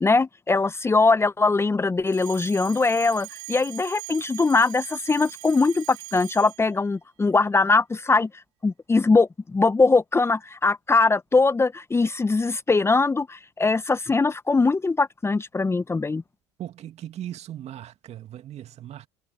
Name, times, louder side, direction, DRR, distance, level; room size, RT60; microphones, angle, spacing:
voice 1, 0.0-8.3 8.6-16.2, left 3 dB, 15° left, 1.1 m, -21 dB
Alarm, 2.1-6.7, right 29 dB, 65° right, 5.1 m, -40 dB
voice 2, 16.6-19.1, right 11 dB, 45° right, 2.5 m, -38 dB
hypercardioid pair, 70°, 15 cm